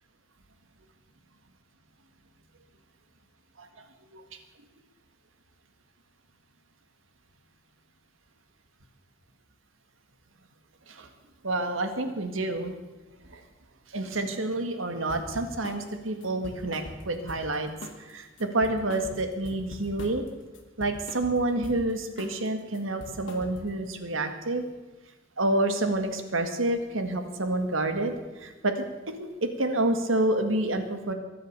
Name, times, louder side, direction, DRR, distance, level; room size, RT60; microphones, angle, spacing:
voice 1, 11.4-12.7 13.3-13.4 13.9-17.7 18.0-20.2 20.8-24.7 25.4-29.1 29.4-31.1, right 2 dB, 90° right, 7 dB, 1.8 m, -28 dB
sound 1, 15.1-15.8 16.2-17.6 17.8-18.1 18.4-20.3 20.5-21.8 22.2-22.5 22.7-23.8, left 1 dB, 70° left, 1.7 m, -42 dB
22.5 x 8.0 x 6.7 m, 1.2 s
head